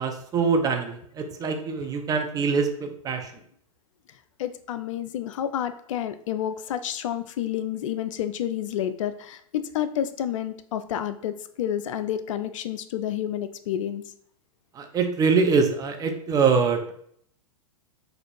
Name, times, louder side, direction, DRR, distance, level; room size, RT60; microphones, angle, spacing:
voice 1, 0.0-3.3 14.7-16.9, right 5 dB, 20° right, 4 dB, 0.6 m, -24 dB
voice 2, 4.1-14.0, left 10 dB, 60° left, 11 dB, 0.4 m, -30 dB
4.2 x 2.6 x 4.5 m, 0.64 s
hypercardioid pair, 105°, 19 cm